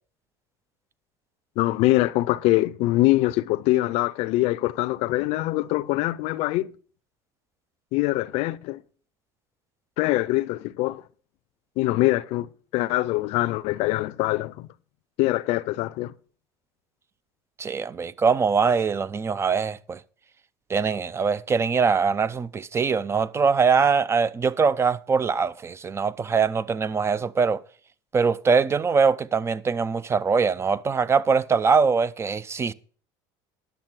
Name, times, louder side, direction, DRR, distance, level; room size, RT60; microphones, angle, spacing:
voice 1, 1.6-6.7 7.9-8.8 10.0-11.0 11.8-14.7 15.2-16.1, left 18 dB, 65° left, 0.6 m, -23 dB
voice 2, 17.6-20.0 20.7-27.6 28.1-32.7, right 5 dB, 25° right, 0.5 m, -22 dB
10.5 x 7.1 x 6.1 m
supercardioid pair, 100°, 11 cm